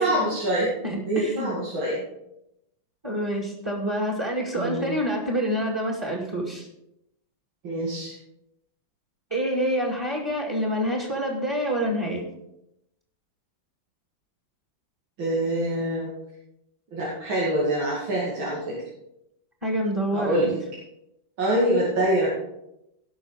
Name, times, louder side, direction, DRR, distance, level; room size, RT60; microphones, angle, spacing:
voice 1, 0.0-0.7 1.0-2.0 4.5-4.9 7.6-8.1 15.2-16.1 16.9-18.8 20.1-20.6 21.4-22.3, right 1 dB, 85° right, -5 dB, 3.3 m, -25 dB
voice 2, 0.8-1.5 3.0-6.7 9.3-12.2 19.6-20.4, equal, 10° right, 0 dB, 2.1 m, -27 dB
17.5 x 6.3 x 4.8 m, 0.84 s
omnidirectional pair, 2.1 m